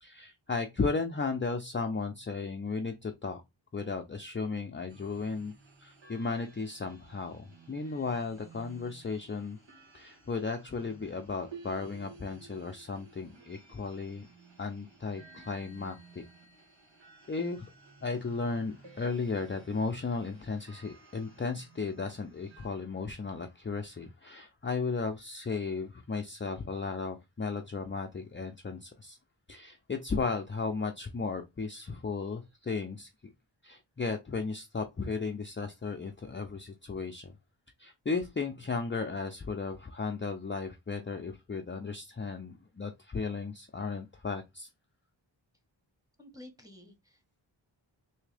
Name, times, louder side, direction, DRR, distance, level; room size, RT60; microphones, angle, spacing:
voice 1, 0.0-3.4 3.7-5.5 5.8-9.6 9.9-14.3 14.6-16.2 17.3-17.7 18.0-29.2 29.5-33.1 33.6-37.3 37.8-44.7, left 4 dB, 25° left, 0.5 m, -35 dB
sound 1, 4.9-22.7, right 4 dB, 65° right, 1.3 m, -55 dB
voice 2, 46.2-47.4, left 1 dB, 5° right, 1.3 m, -52 dB
3.5 x 2.8 x 3.3 m
cardioid pair, 40°, 47 cm